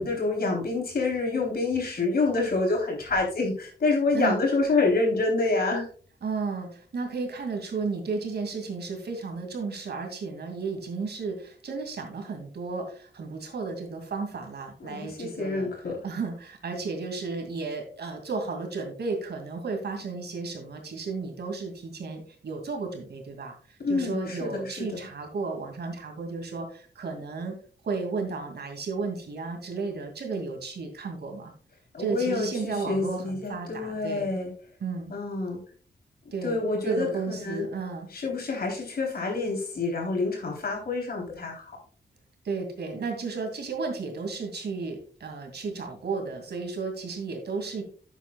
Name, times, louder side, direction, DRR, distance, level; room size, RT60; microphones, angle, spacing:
voice 1, 0.0-5.9 14.8-16.0 23.8-24.9 31.9-34.5 35.1-35.6 36.4-37.6 38.1-41.8, left 3 dB, 60° left, 0 dB, 3.5 m, -27 dB
voice 2, 6.2-15.7 16.0-27.5 27.8-31.5 32.0-34.4 34.8-35.1 36.3-38.1 42.4-47.8, right 4 dB, 75° right, 4 dB, 2.3 m, -33 dB
11.5 x 8.2 x 2.3 m, 0.42 s
wide cardioid pair, 155°, 18 cm